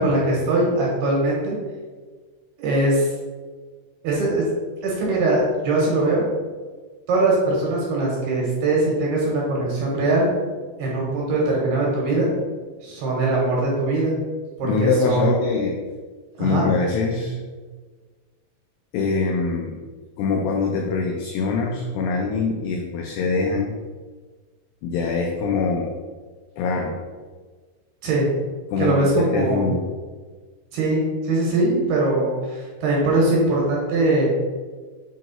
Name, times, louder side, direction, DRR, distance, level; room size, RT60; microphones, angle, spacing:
voice 1, 0.0-1.5 2.6-3.1 4.0-4.4 4.8-6.2 7.1-10.3 10.8-12.3 12.8-14.1 14.6-15.3 16.4-16.7 28.0-28.3 28.8-29.6 30.7-34.3, right 2 dB, 70° right, -4 dB, 2.6 m, -21 dB
voice 2, 14.6-15.8 16.4-17.4 18.9-19.8 20.2-23.7 24.8-25.9 26.6-27.0 28.7-29.9, left 4 dB, 90° left, 1 dB, 2.4 m, -23 dB
7.6 x 3.0 x 4.4 m, 1.4 s
omnidirectional pair, 5.5 m